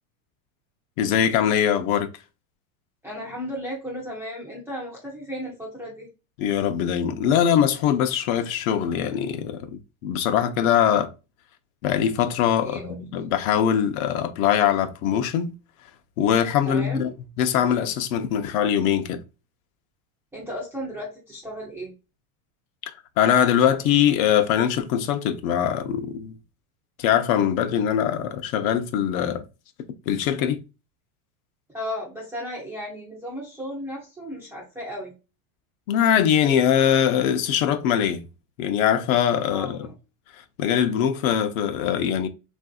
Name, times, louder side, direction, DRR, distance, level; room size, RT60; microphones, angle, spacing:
voice 1, 1.0-2.1 6.4-11.1 11.8-15.5 16.2-19.2 22.9-26.3 27.0-29.4 30.1-30.6 35.9-38.3 38.6-39.9 40.6-42.3, left 9 dB, 70° left, 0.7 m, -22 dB
voice 2, 3.0-6.1 10.9-11.0 12.6-12.9 16.7-17.1 20.3-21.9 31.7-35.1 39.5-39.9, equal, 5° right, 0.3 m, -34 dB
3.4 x 2.6 x 2.3 m
supercardioid pair, 155°, 44 cm